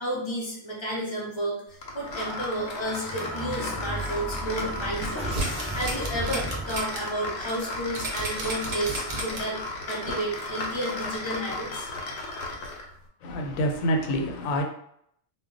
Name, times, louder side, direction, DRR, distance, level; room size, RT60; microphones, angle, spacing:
voice 1, 0.0-9.6 9.9-12.7, right 1 dB, 30° left, -4 dB, 0.5 m, -32 dB
sound 1, 1.8-12.9, left 2 dB, 65° left, 0.8 m, -35 dB
sound 2, 2.2-7.2, right 1 dB, 5° right, 0.7 m, -36 dB
sound 3, 4.9-7.0 7.4-7.5 7.9-9.6 10.0-10.1, right 2 dB, 50° right, 0.6 m, -33 dB
voice 2, 13.2-14.6, equal, 90° left, 2 dB, 1.0 m, -26 dB
2.2 x 2.1 x 3.7 m, 0.70 s
omnidirectional pair, 1.4 m